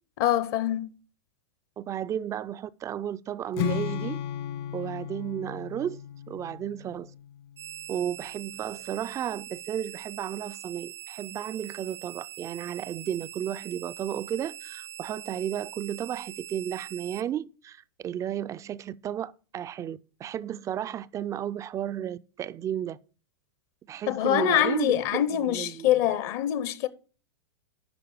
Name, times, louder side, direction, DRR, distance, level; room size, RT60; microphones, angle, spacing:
voice 1, 0.2-0.9 24.1-26.9, left 11 dB, 50° left, 0.8 m, -24 dB
voice 2, 1.8-4.2 4.7-6.0 6.3-7.1 7.9-23.0 23.9-25.9, right 10 dB, 20° right, 0.4 m, -33 dB
Strum, 3.5-7.7, left 10 dB, 65° left, 1.8 m, -35 dB
sound 1, 7.6-17.2, right 15 dB, 70° right, 0.8 m, -43 dB
11.0 x 4.8 x 4.8 m
hypercardioid pair, 120°, 14 cm